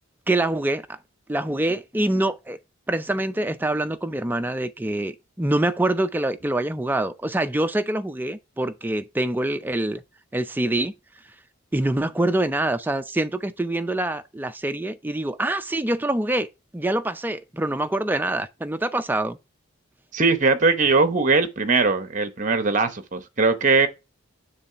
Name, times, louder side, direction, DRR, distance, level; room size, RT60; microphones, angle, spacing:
voice 1, 0.3-1.0 1.3-2.6 2.9-10.0 10.3-10.9 11.7-16.5 16.7-19.4, right 1 dB, 10° right, 0.4 m, -25 dB
voice 2, 20.1-23.9, right 4 dB, 40° right, 0.8 m, -20 dB
6.9 x 3.3 x 5.6 m
head